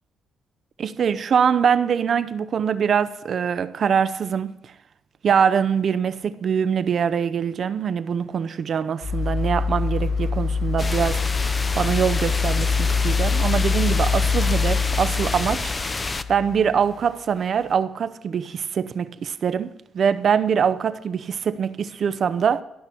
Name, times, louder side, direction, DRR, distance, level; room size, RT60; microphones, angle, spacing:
voice 1, 0.8-4.6 5.2-11.2 11.7-15.7 16.3-22.6, right 7 dB, 55° right, 0.7 m, -23 dB
sound 1, 9.0-17.2 17.7-17.8, left 5 dB, 45° left, 5.1 m, -24 dB
sound 2, 10.8-16.2, left 3 dB, 25° left, 0.6 m, -29 dB
13.5 x 6.0 x 8.6 m
cardioid pair, 90°, 0 cm